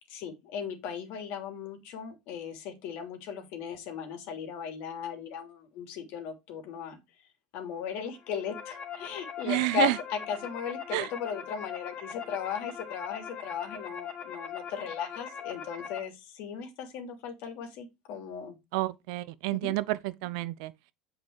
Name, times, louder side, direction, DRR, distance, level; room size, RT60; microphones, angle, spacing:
voice 1, 0.1-7.0 7.5-18.6 19.5-19.8, left 7 dB, 60° left, 2.9 m, -37 dB
sound 1, 8.2-16.0, left 8 dB, 35° left, 2.4 m, -41 dB
voice 2, 9.5-9.9 10.9-11.1 18.7-20.7, right 19 dB, 70° right, 0.7 m, -29 dB
8.5 x 5.3 x 4.7 m
hypercardioid pair, 85°, 4 cm